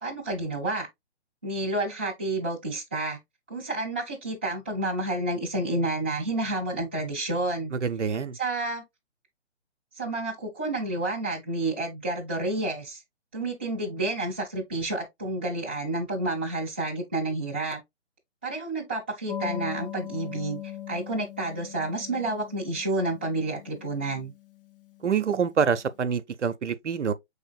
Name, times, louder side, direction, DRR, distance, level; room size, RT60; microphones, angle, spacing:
voice 1, 0.0-0.9 1.4-3.2 3.5-7.7 8.4-8.8 10.0-13.0 13.3-17.8 18.4-20.6 20.9-24.3, right 2 dB, 10° right, 0.4 m, -30 dB
voice 2, 7.7-8.4 25.0-27.1, right 6 dB, 80° right, 0.6 m, -26 dB
sound 1, 19.3-25.5, left 10 dB, 50° left, 0.7 m, -40 dB
5.5 x 3.5 x 2.2 m
figure-of-eight pair, 135°, 35 cm